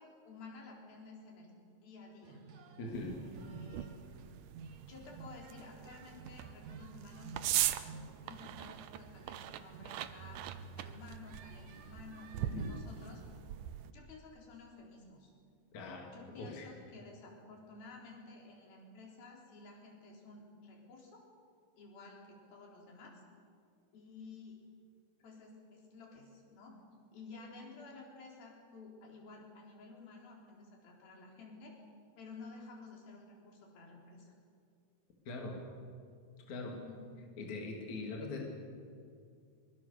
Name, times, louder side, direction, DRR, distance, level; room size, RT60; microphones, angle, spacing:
voice 1, 0.0-1.5 1.8-2.4 3.2-3.9 4.9-7.3 7.6-10.4 10.8-13.2 13.9-15.3 16.1-21.2 21.8-23.2 23.9-24.6 25.2-26.8 27.1-31.9 32.2-34.3 36.7-37.0, left 3 dB, 85° left, -1 dB, 5.8 m, -53 dB
sound 1, 2.2-13.1, right 5 dB, 60° right, 2.7 m, -52 dB
voice 2, 2.8-3.2 12.5-12.7 15.7-16.7 35.3-35.6 36.5-36.8 37.4-38.5, left 3 dB, 55° left, 0 dB, 3.9 m, -42 dB
sound 2, 2.9-13.9, right 12 dB, 75° right, 2.2 m, -41 dB
23.5 x 23.5 x 6.8 m, 2.3 s
omnidirectional pair, 4.1 m